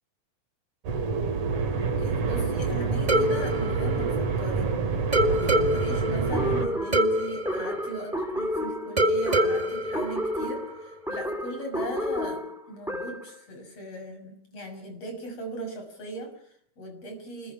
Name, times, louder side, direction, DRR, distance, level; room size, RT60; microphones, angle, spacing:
sound 1, 0.8-6.7, right 4 dB, 65° right, 4.1 m, -27 dB
voice 1, 1.8-4.7 5.3-17.5, right 1 dB, 50° left, 5 dB, 7.2 m, -38 dB
sound 2, 3.1-4.7 5.1-8.5 9.0-10.9, equal, 20° right, 1.1 m, -26 dB
sound 3, 6.3-13.4, equal, ahead, 3.6 m, -31 dB
29.5 x 21.0 x 5.0 m, 0.64 s
omnidirectional pair, 3.7 m